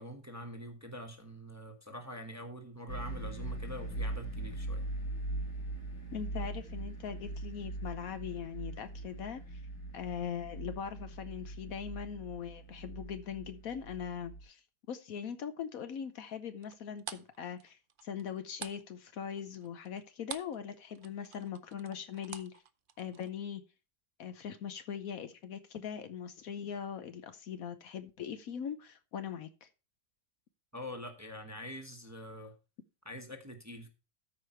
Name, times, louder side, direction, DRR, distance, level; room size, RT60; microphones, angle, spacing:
voice 1, 0.0-4.8 30.7-32.5 33.0-33.9, equal, 10° right, 5 dB, 1.1 m, -45 dB
sound 1, 2.9-14.4, right 2 dB, 85° left, 2.8 m, -41 dB
voice 2, 6.1-9.6 9.9-14.6 14.9-22.6 23.0-23.6 24.2-29.7, left 8 dB, 65° left, 10 dB, 1.1 m, -41 dB
sound 2, 16.6-20.6 20.9-23.3, right 8 dB, 60° right, 0.5 m, -47 dB
13.0 x 5.0 x 4.4 m, 0.30 s
omnidirectional pair, 1.7 m